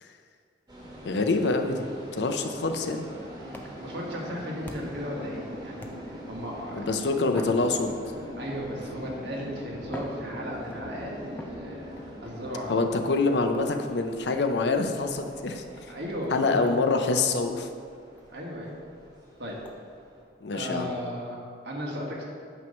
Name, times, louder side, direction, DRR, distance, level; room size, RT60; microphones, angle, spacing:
sound 1, 0.7-20.2, equal, 25° right, 1.3 m, -42 dB
voice 1, 1.0-3.1 6.7-7.9 12.7-15.6 16.3-17.7 20.4-20.9, left 3 dB, 70° left, 6 dB, 0.6 m, -26 dB
voice 2, 3.4-7.1 8.4-11.9 12.2-12.9 15.9-16.7 18.3-18.8 19.4-19.6 20.5-22.2, equal, 70° right, -2 dB, 1.4 m, -36 dB
sound 2, 3.5-5.1 5.8-6.4 7.3-8.4 9.2-9.3 9.8-10.9 11.4-12.1 13.5-13.8 14.9-15.1 15.8-15.9 16.2-16.3 16.7-16.8 17.1-17.2 17.6-17.7 18.2-18.3 18.7-18.8 19.6-19.8, left 1 dB, 10° left, 0.4 m, -45 dB
9.0 x 3.1 x 6.3 m, 2.2 s
head